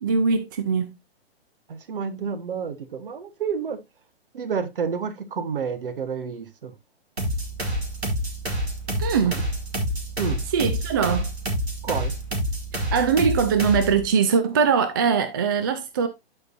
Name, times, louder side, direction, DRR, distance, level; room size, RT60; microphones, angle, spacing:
voice 1, 0.0-0.9 9.0-9.4 10.5-11.3 12.9-16.1, right 6 dB, 20° right, 0.3 m, -21 dB
voice 2, 1.7-3.8 4.3-6.7 10.2-10.4 11.8-12.2, right 6 dB, 55° right, 1.1 m, -29 dB
sound 1, 7.2-14.0, equal, 80° right, 2.2 m, -28 dB
13.0 x 4.5 x 2.4 m
figure-of-eight pair, 120°, 32 cm